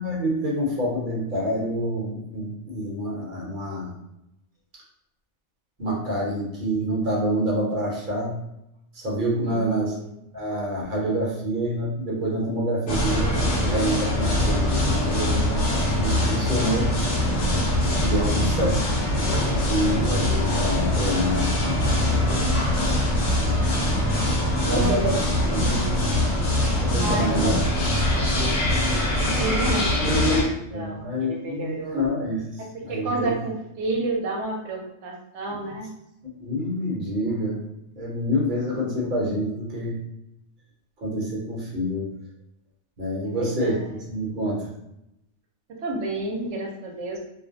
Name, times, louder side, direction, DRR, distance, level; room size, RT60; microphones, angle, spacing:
voice 1, 0.0-3.9 5.8-8.4 8.9-9.9 10.3-16.9 18.0-18.9 19.1-22.5 22.8-23.6 24.7-25.1 25.5-26.2 26.6-27.6 27.9-29.7 30.7-32.4 32.8-33.3 36.2-37.6 37.9-40.0 41.0-42.1 43.0-44.7, equal, 50° right, -3 dB, 0.8 m, -27 dB
voice 2, 9.5-10.1 24.6-26.0 27.0-27.6 29.3-32.0 32.9-35.9 43.2-43.9 45.8-47.2, right 2 dB, 80° right, 0 dB, 0.9 m, -30 dB
sound 1, 12.9-30.4, left 1 dB, 85° left, 1.0 m, -23 dB
2.4 x 2.1 x 2.5 m, 0.83 s
omnidirectional pair, 1.2 m